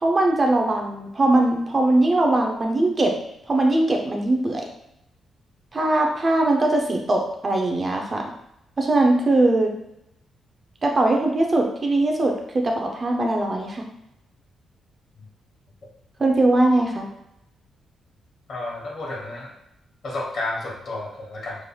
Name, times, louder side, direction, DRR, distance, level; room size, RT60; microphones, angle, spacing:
voice 1, 0.0-3.1 3.5-4.6 5.7-8.2 8.8-9.7 10.8-13.8 16.2-17.1, right 2 dB, 25° right, 1 dB, 0.6 m, -20 dB
voice 2, 18.5-19.5 20.0-21.6, left 2 dB, 50° left, -2 dB, 1.2 m, -31 dB
5.5 x 3.2 x 2.3 m, 0.82 s
cardioid pair, 145°, 0 cm